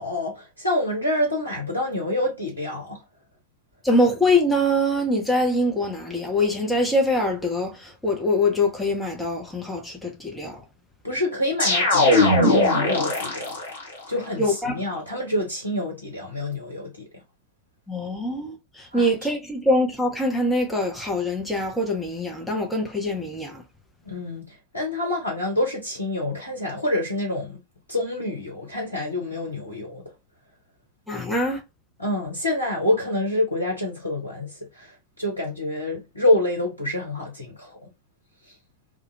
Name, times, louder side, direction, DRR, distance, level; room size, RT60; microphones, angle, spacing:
voice 1, 0.0-3.0 11.0-13.5 14.1-17.0 18.9-19.1 24.0-27.6 27.9-30.0 32.0-37.8, left 1 dB, 80° left, 0.8 m, -27 dB
voice 2, 3.8-10.6 14.4-14.8 17.9-23.6 31.1-31.6, left 1 dB, 5° left, 0.7 m, -24 dB
sound 1, 11.6-13.8, left 2 dB, 65° left, 1.2 m, -19 dB
2.4 x 2.1 x 2.7 m
figure-of-eight pair, 90°, 0 cm